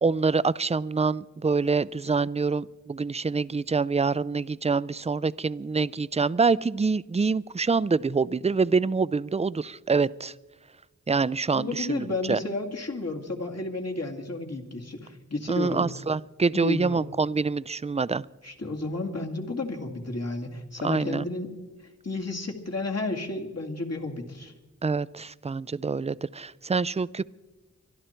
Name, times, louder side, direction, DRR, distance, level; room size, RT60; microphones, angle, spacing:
voice 1, 0.0-10.3 11.1-12.4 15.5-18.3 20.8-21.3 24.8-27.2, right 4 dB, 20° right, 21 dB, 0.4 m, -26 dB
voice 2, 11.5-15.9 16.5-17.0 18.4-21.5 22.0-24.5, left 2 dB, 55° left, 1 dB, 2.5 m, -32 dB
24.0 x 12.0 x 4.5 m, 1.2 s
wide cardioid pair, 60°, 31 cm